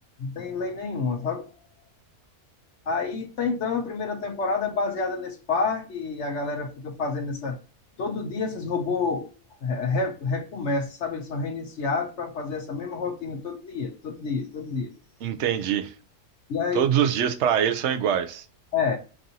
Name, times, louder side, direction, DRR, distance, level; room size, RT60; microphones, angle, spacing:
voice 1, 0.2-1.5 2.9-7.6 8.0-9.3 9.6-14.9 16.5-16.9 18.7-19.0, left 4 dB, 60° left, 0.9 m, -28 dB
voice 2, 15.2-15.9 16.7-18.4, right 9 dB, 65° right, 0.8 m, -24 dB
5.3 x 2.6 x 2.7 m
omnidirectional pair, 1.6 m